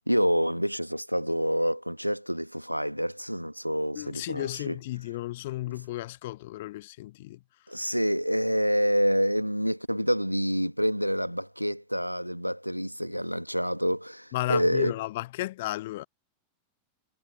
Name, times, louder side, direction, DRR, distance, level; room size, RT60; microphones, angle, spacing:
voice 1, 0.1-4.8 7.7-14.9, equal, 90° right, 1.6 m, -27 dB
voice 2, 4.0-7.4 14.3-16.0, left 17 dB, 55° left, 0.7 m, -33 dB
figure-of-eight pair, 90°, 0 cm